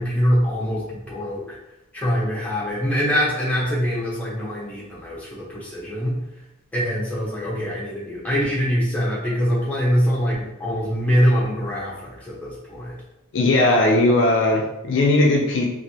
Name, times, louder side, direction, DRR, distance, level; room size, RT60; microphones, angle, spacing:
voice 1, 0.0-1.6 1.9-6.2 6.7-12.9, equal, 5° left, -5 dB, 0.7 m, -23 dB
voice 2, 13.3-15.7, left 2 dB, 60° left, 1 dB, 0.4 m, -18 dB
3.0 x 2.5 x 2.7 m, 0.91 s
head